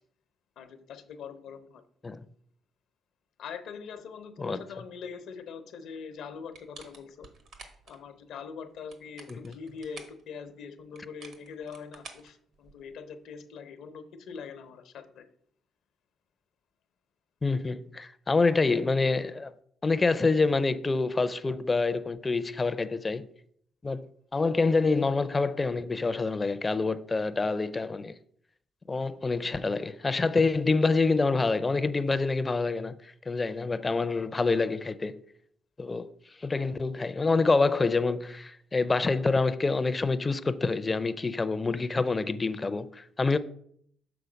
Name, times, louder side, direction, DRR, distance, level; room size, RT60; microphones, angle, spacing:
voice 1, 0.6-1.8 3.4-7.3 7.9-15.3, left 6 dB, 80° left, 0.7 m, -43 dB
sound 1, 6.5-8.0 8.7-10.2 11.0-13.0, right 4 dB, 70° right, 1.1 m, -50 dB
voice 2, 17.4-19.5 19.8-23.3 23.8-28.1 28.9-35.2 35.8-36.1 36.4-43.4, left 3 dB, 25° left, 0.4 m, -27 dB
6.9 x 3.8 x 5.0 m
cardioid pair, 90°, 0 cm